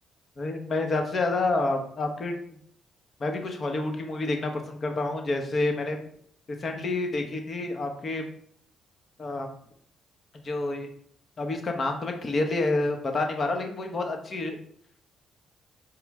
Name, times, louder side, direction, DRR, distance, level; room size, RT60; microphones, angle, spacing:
voice 1, 0.4-2.6 3.2-6.0 6.5-8.3 9.2-9.5 10.4-10.9 11.4-14.6, left 2 dB, 40° left, 4 dB, 0.8 m, -28 dB
4.7 x 3.1 x 3.5 m, 0.65 s
cardioid pair, 90°, 0 cm